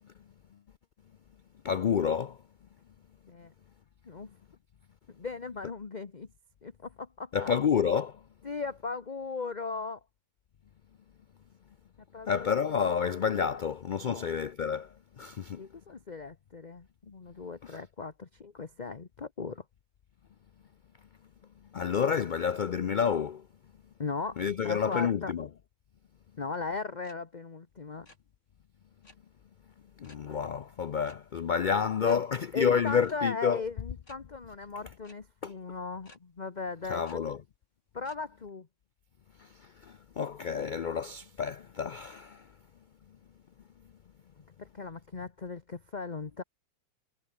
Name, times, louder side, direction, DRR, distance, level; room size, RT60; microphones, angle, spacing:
voice 1, 1.6-2.4 7.3-8.2 12.3-15.6 17.6-17.8 21.7-23.4 24.4-25.5 30.0-33.6 35.4-35.5 36.9-37.4 39.4-42.4, left 7 dB, 85° left, 0.4 m, -29 dB
voice 2, 5.2-6.3 6.6-7.5 8.4-10.0 12.1-12.6 14.1-14.3 15.6-19.6 24.0-25.3 26.4-28.1 32.0-32.2 32.5-37.2 37.9-38.7 44.6-46.4, left 4 dB, 30° left, 1.2 m, -38 dB
sound 1, 27.0-27.2 27.4-27.6 27.9-28.2 29.0-29.2 30.0-30.3 31.0-31.2 31.5-31.6 32.0-32.2 33.0-33.2 34.0-34.2 35.0-35.1 36.0-36.2 37.0-37.2 38.0-38.2, left 2 dB, 50° left, 6.6 m, -56 dB
omnidirectional pair, 1.6 m